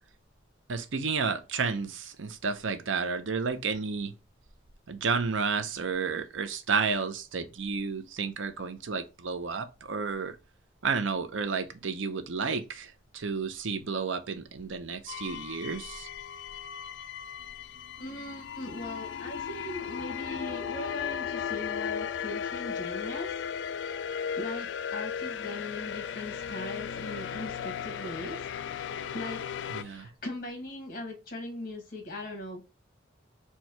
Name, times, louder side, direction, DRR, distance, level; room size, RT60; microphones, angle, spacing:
voice 1, 0.7-4.1 4.9-10.4 10.8-16.1 29.7-30.1, right 5 dB, 90° right, 0.6 m, -31 dB
sound 1, 15.1-29.8, left 7 dB, 70° left, 0.3 m, -36 dB
voice 2, 18.0-23.4 24.3-28.5 29.1-32.6, left 1 dB, 50° left, 1.6 m, -40 dB
4.5 x 2.3 x 4.4 m
head